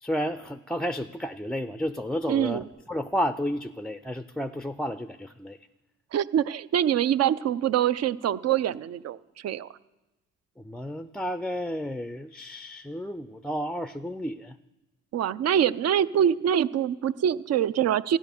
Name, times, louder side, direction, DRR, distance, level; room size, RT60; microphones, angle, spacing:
voice 1, 0.0-5.6 10.6-14.6, equal, ahead, 12 dB, 0.4 m, -32 dB
voice 2, 2.3-2.6 6.1-9.2 9.4-9.7 15.1-18.2, right 10 dB, 55° right, 16 dB, 0.5 m, -24 dB
13.5 x 10.5 x 7.0 m, 1.0 s
cardioid pair, 90°, 30 cm